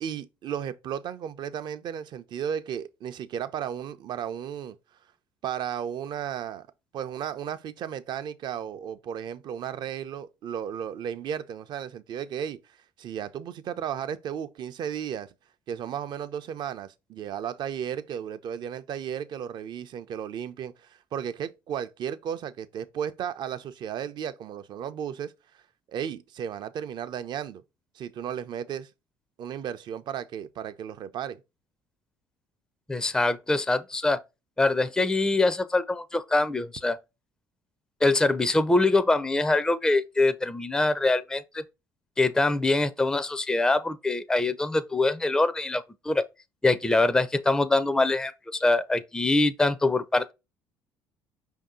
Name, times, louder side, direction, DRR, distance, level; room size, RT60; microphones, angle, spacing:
voice 1, 0.0-4.8 5.4-6.7 6.9-15.3 15.7-25.3 25.9-27.6 27.9-28.9 29.4-31.4, right 9 dB, 55° right, 0.5 m, -34 dB
voice 2, 32.9-34.2 34.6-37.0 38.0-41.6 42.2-46.2 46.6-48.3 48.6-50.3, left 2 dB, 5° left, 0.4 m, -24 dB
5.2 x 2.7 x 3.7 m
supercardioid pair, 75°, 9 cm